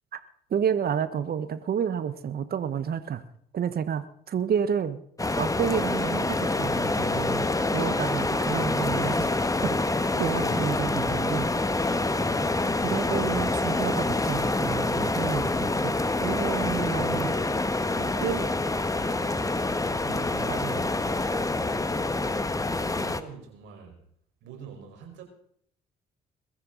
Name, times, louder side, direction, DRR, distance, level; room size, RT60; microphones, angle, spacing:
voice 1, 0.5-3.2 3.5-5.0 5.4-9.4 9.6-11.5 12.8-15.9 16.2-17.3 18.2-18.5 20.5-20.7, right 8 dB, 50° right, 1.3 m, -30 dB
sound 1, 5.2-23.2, left 2 dB, 15° left, 1.6 m, -26 dB
voice 2, 16.9-22.4 22.9-24.0 24.4-25.2, right 7 dB, 70° right, 5.2 m, -46 dB
22.0 x 14.5 x 4.1 m
hypercardioid pair, 50°, 20 cm